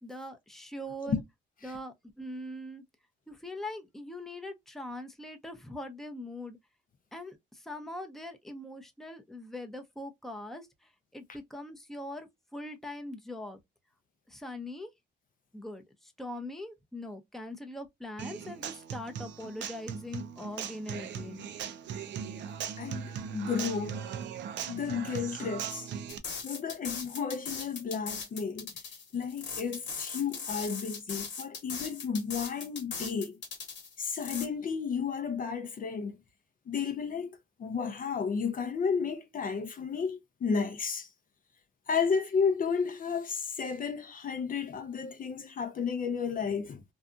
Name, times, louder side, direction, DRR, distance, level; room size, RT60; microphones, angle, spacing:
voice 1, 0.0-1.2 1.6-2.8 3.3-6.6 7.1-13.6 14.3-14.9 15.5-21.5, left 1 dB, ahead, 0.6 m, -42 dB
Human voice / Acoustic guitar, 18.2-26.2, right 8 dB, 65° right, 0.5 m, -39 dB
voice 2, 22.8-24.0 24.7-25.9 26.4-28.7 29.1-33.4 34.0-36.2 36.7-41.1 41.9-46.8, left 6 dB, 45° left, 0.5 m, -32 dB
sound 1, 26.1-34.5, left 5 dB, 65° left, 1.1 m, -39 dB
2.7 x 2.3 x 2.4 m
cardioid pair, 90°, 20 cm